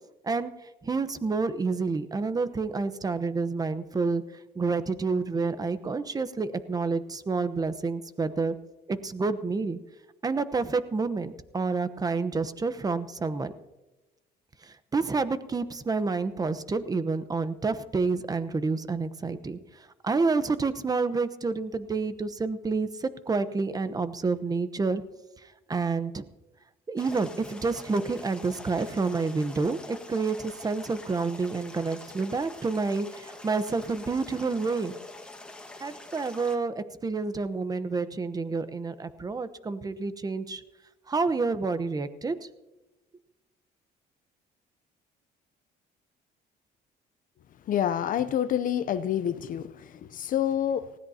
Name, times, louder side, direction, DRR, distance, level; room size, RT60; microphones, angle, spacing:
voice 1, 0.8-4.2 4.6-8.5 8.9-9.8 10.2-13.5 14.9-19.6 20.0-25.0 25.7-26.2 26.9-34.9 35.8-40.6 41.1-42.3, right 4 dB, 20° right, 0.9 m, -29 dB
sound 1, 27.0-36.6, left 2 dB, 5° left, 1.7 m, -45 dB
voice 2, 47.7-51.0, left 10 dB, 55° left, 0.7 m, -28 dB
19.0 x 16.5 x 2.8 m
cardioid pair, 110°, 17 cm